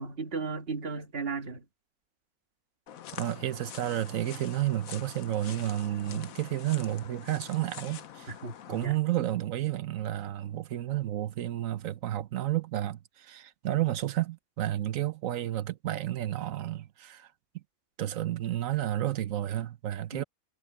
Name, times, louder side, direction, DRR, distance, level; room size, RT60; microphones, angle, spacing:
voice 1, 0.0-1.7 6.1-6.3 8.3-9.0 20.1-20.2, right 4 dB, 40° right, 1.9 m, -36 dB
sound 1, 2.9-8.9, left 9 dB, 70° left, 1.3 m, -45 dB
voice 2, 3.1-8.3 8.7-17.3 18.0-20.2, right 13 dB, 65° right, 1.2 m, -31 dB
omnidirectional pair, 1.5 m